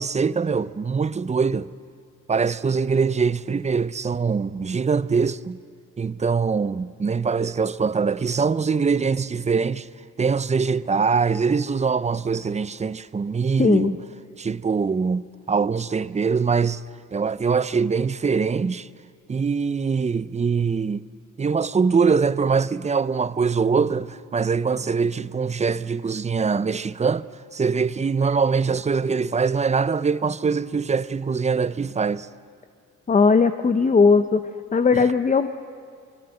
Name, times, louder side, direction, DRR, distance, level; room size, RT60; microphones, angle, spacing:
voice 1, 0.0-1.7 2.3-5.6 6.0-9.9 10.2-14.0 14.4-16.8 17.1-18.9 19.3-21.1 21.4-27.3 27.5-32.3 34.9-35.0, right 5 dB, 25° right, 0.6 m, -23 dB
voice 2, 13.6-13.9 33.1-34.4 34.7-35.5, left 4 dB, 25° left, 0.8 m, -18 dB
23.5 x 22.0 x 7.9 m
cardioid pair, 90°, 30 cm